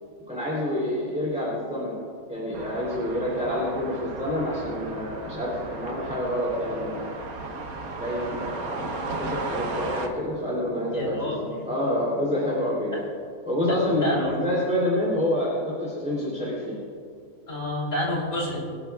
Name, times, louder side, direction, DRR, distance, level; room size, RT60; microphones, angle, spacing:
voice 1, 0.3-2.0 2.3-7.1 8.0-13.1 13.5-16.8, left 1 dB, 5° right, -8 dB, 3.1 m, -27 dB
sound 1, 2.5-10.1, right 3 dB, 70° right, 1.5 m, -35 dB
voice 2, 10.9-11.5 12.9-13.0 13.6-14.3 17.5-18.6, left 1 dB, 35° left, -4 dB, 3.5 m, -29 dB
23.5 x 12.5 x 2.4 m, 2.2 s
omnidirectional pair, 1.6 m